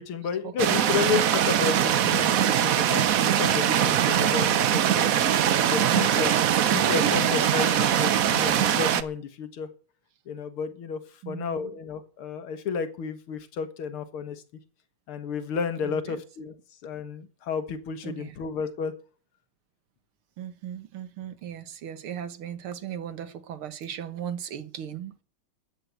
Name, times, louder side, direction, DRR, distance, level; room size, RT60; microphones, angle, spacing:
voice 1, 0.0-6.3 6.7-9.7 10.3-11.0 11.3-14.4 15.1-16.5 16.8-18.9, left 6 dB, 85° left, 2.3 m, -32 dB
sound 1, 0.6-9.0, right 10 dB, 60° right, 0.9 m, -22 dB
voice 2, 0.8-1.1 1.4-1.5 5.9-6.5 6.7-7.1 11.2-11.7 15.8-16.2 18.0-18.4 20.4-25.2, right 9 dB, 85° right, 2.2 m, -37 dB
13.5 x 8.7 x 8.0 m
omnidirectional pair, 2.3 m